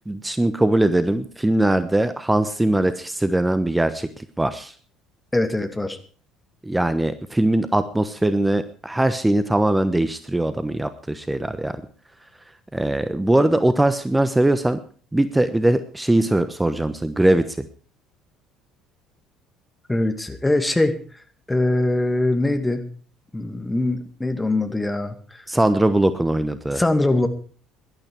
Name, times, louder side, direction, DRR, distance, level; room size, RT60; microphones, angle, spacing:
voice 1, 0.1-4.7 6.6-11.8 12.7-14.8 15.1-17.7 25.5-26.8, right 1 dB, 10° right, 11 dB, 1.1 m, -21 dB
voice 2, 5.3-6.0 19.9-21.0 21.5-22.9 23.3-25.4 26.7-27.3, left 2 dB, 10° left, 7 dB, 2.3 m, -22 dB
17.5 x 12.0 x 4.8 m, 0.43 s
figure-of-eight pair, 55°, 0 cm